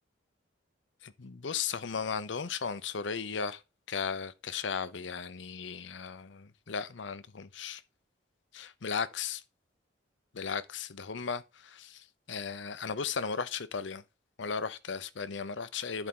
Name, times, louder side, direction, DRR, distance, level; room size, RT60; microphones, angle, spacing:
voice 1, 1.0-3.6 3.9-7.8 8.5-9.4 10.3-14.0 14.4-16.1, left 6 dB, 70° left, 0.7 m, -36 dB
11.0 x 5.0 x 3.7 m
head